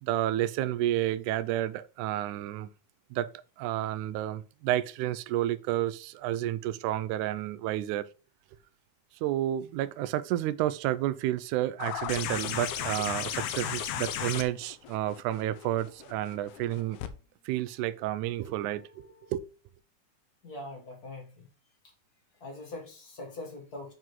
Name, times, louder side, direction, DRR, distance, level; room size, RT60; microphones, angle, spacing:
voice 1, 0.0-2.7 3.1-3.3 3.6-8.1 9.2-17.0 17.5-19.5, right 13 dB, 80° right, 2.0 m, -30 dB
sound 1, 11.8-17.1 18.5-18.6, left 11 dB, 75° left, 2.0 m, -35 dB
voice 2, 20.4-21.5 21.8-21.9 22.4-23.9, left 2 dB, 40° left, 1.6 m, -42 dB
7.8 x 3.8 x 4.5 m
omnidirectional pair, 3.6 m